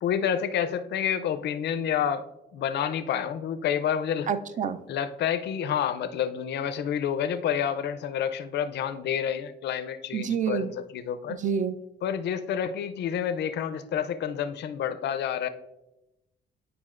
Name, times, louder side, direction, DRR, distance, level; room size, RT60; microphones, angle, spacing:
voice 1, 0.0-2.3 2.5-4.3 4.9-11.4 12.0-15.5, left 8 dB, 70° left, 11 dB, 0.4 m, -29 dB
voice 2, 4.3-4.8 10.1-10.7 11.4-11.7, right 7 dB, 45° right, 12 dB, 0.4 m, -27 dB
9.3 x 4.7 x 2.4 m, 0.93 s
cardioid pair, 90°, 19 cm